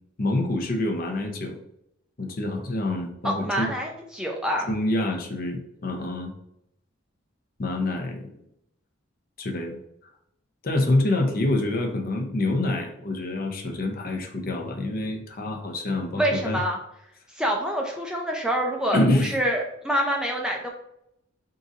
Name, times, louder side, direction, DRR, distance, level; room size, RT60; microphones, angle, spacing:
voice 1, 0.2-1.6 2.2-3.7 4.7-6.3 7.6-8.3 9.4-9.8 10.6-16.6 18.9-19.3, left 2 dB, 45° left, 3 dB, 0.6 m, -26 dB
voice 2, 3.2-4.7 16.1-16.8 17.3-20.7, equal, 5° right, 0 dB, 0.4 m, -26 dB
3.7 x 2.6 x 3.9 m, 0.77 s
head